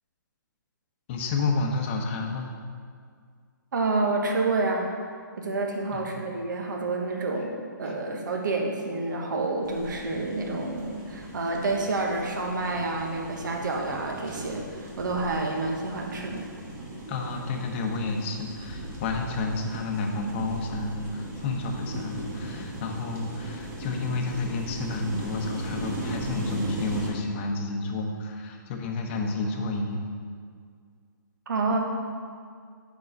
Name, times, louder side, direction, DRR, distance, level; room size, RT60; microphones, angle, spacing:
voice 1, 1.1-2.5 5.9-6.2 17.1-30.0, left 3 dB, 35° left, 2 dB, 0.9 m, -30 dB
voice 2, 3.7-4.9 5.4-16.5 31.5-31.8, right 3 dB, 65° right, 1 dB, 1.3 m, -28 dB
sound 1, 9.6-27.1, right 1 dB, 20° right, 1.4 m, -38 dB
6.8 x 4.7 x 5.2 m, 2.1 s
hypercardioid pair, 140°, 11 cm